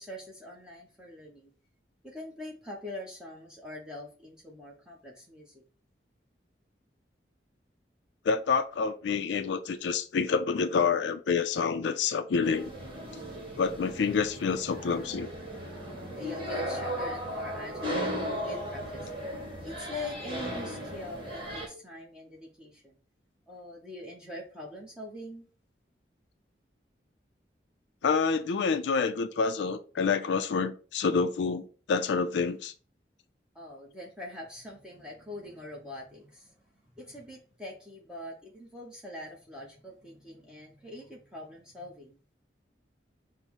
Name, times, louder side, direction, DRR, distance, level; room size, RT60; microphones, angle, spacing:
voice 1, 0.0-1.5 2.0-5.6 13.1-13.5 15.5-18.0 18.4-19.1 19.6-23.0 23.5-25.4 33.5-42.2, left 1 dB, 5° right, 0.8 m, -43 dB
voice 2, 8.3-12.7 13.6-15.3 28.0-32.7, left 5 dB, 80° left, 0.4 m, -28 dB
sound 1, 12.4-21.7, equal, 30° right, 1.7 m, -36 dB
5.3 x 2.0 x 4.5 m
head